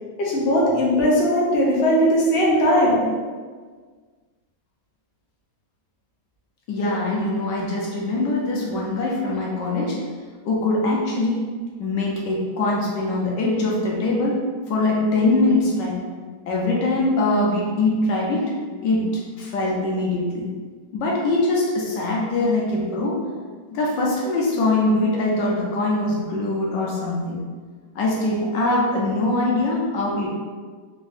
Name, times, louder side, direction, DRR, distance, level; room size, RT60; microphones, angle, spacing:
voice 1, 0.2-3.0, equal, 45° left, -5 dB, 0.8 m, -18 dB
voice 2, 6.7-10.0 10.4-11.5 11.8-14.4 14.7-16.0 16.5-18.5 18.8-20.4 20.9-23.2 23.7-27.4 27.9-30.3, left 2 dB, 80° left, -3 dB, 1.4 m, -22 dB
3.9 x 2.6 x 3.3 m, 1.5 s
omnidirectional pair, 1.9 m